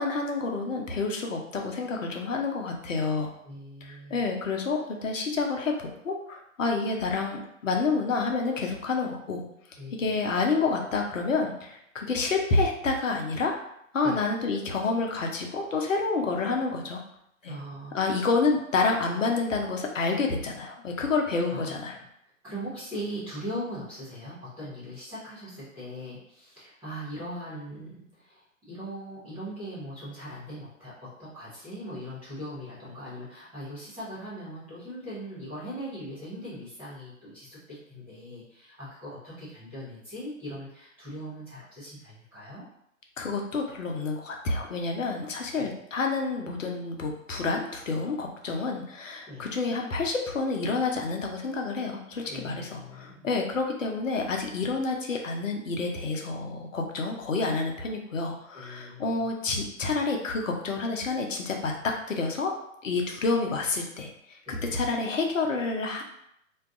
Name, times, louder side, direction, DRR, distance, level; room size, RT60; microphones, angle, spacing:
voice 1, 0.0-3.3 3.8-9.4 10.0-13.5 13.9-17.0 17.4-17.6 17.9-22.0 43.2-62.5 62.8-66.0, left 4 dB, 70° left, 1 dB, 0.8 m, -29 dB
voice 2, 3.4-4.3 9.7-10.2 14.0-14.2 17.4-18.2 21.5-21.8 22.4-42.6 45.6-45.7 49.3-49.5 52.3-53.3 58.5-59.3 64.4-64.7, equal, 5° right, -17 dB, 0.4 m, -40 dB
2.6 x 2.3 x 3.5 m, 0.75 s
figure-of-eight pair, 115°, 40 cm